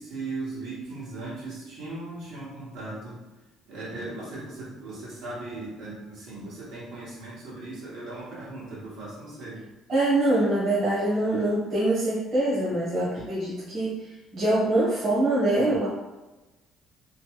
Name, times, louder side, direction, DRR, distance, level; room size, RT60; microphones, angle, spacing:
voice 1, 0.0-3.2 3.7-9.6, right 2 dB, 80° right, -8 dB, 1.5 m, -38 dB
voice 2, 9.9-15.9, right 1 dB, 45° right, -8 dB, 1.1 m, -24 dB
3.1 x 2.1 x 3.1 m, 1.1 s
cardioid pair, 150°, 0 cm